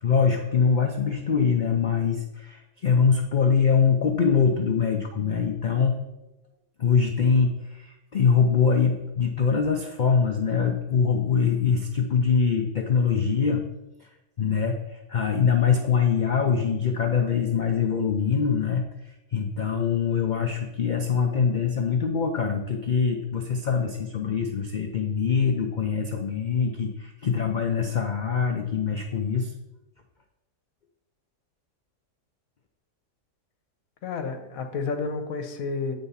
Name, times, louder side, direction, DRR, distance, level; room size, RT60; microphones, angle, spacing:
voice 1, 0.0-6.0 6.8-13.6 14.4-18.8 19.3-29.5, left 6 dB, 80° left, 4 dB, 0.4 m, -23 dB
voice 2, 34.0-35.9, left 4 dB, 65° left, 6 dB, 1.3 m, -30 dB
8.0 x 4.1 x 5.6 m, 0.95 s
omnidirectional pair, 1.6 m